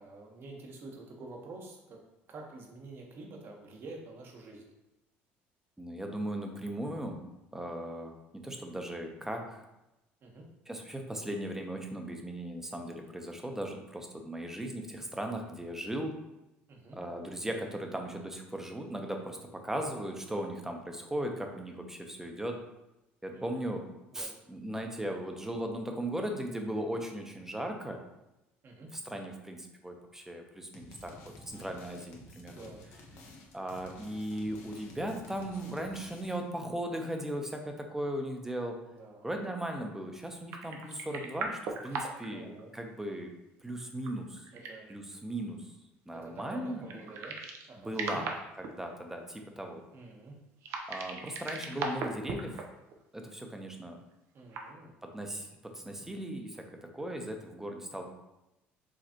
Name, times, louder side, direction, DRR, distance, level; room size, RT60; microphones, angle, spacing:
voice 1, 0.0-2.0 2.3-4.7 10.2-10.5 16.7-17.0 23.3-23.8 24.1-24.4 28.6-28.9 32.5-32.8 34.9-35.2 38.9-39.3 42.3-42.7 44.5-44.9 46.2-47.4 47.7-48.2 49.9-50.3 54.3-54.9 56.9-57.2, right 2 dB, 50° right, 1 dB, 1.1 m, -48 dB
voice 2, 5.8-7.3 7.5-9.6 10.7-16.1 16.9-22.6 23.2-23.9 24.1-28.0 28.9-32.7 33.5-38.8 39.2-42.5 42.7-43.3 43.6-44.5 44.9-45.7 46.1-46.9 47.8-48.3 48.7-49.8 50.9-52.6 53.1-54.0 55.0-58.0, right 1 dB, 10° right, 3 dB, 0.8 m, -37 dB
sound 1, 30.7-36.5, left 1 dB, 65° left, 0.8 m, -52 dB
sound 2, 40.5-42.3 42.6-42.7 43.8-44.9 46.8-47.7 47.9-48.7 50.6-52.6 52.9-53.0 54.4-54.7, right 4 dB, 65° right, 0.7 m, -38 dB
5.0 x 3.2 x 2.9 m, 0.93 s
supercardioid pair, 85°, 5 cm